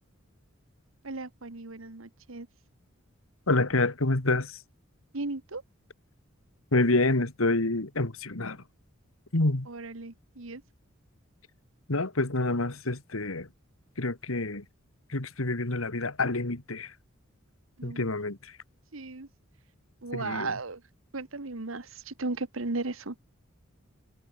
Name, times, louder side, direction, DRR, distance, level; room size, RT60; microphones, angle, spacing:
voice 1, 1.0-2.5 5.1-5.6 9.7-10.6 17.8-18.0 18.9-19.3 20.0-20.8 21.1-23.1, right 3 dB, 80° right, 1.5 m, -36 dB
voice 2, 3.5-4.6 6.7-8.6 9.3-9.7 11.9-13.5 14.0-14.6 15.1-16.9 17.8-18.5 20.1-20.6, left 2 dB, 85° left, 2.1 m, -27 dB
head